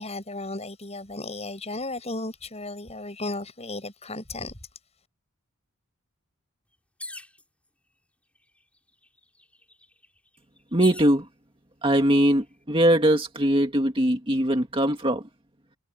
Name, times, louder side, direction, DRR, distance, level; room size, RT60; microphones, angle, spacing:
voice 1, 0.0-4.5, left 2 dB, 30° left, 6.9 m, -35 dB
sound 1, 7.0-7.4 8.4-8.5 8.8-11.2 11.9-12.4, left 2 dB, 5° left, 5.5 m, -41 dB
voice 2, 10.7-11.3 11.8-15.2, right 1 dB, 25° right, 2.1 m, -21 dB
head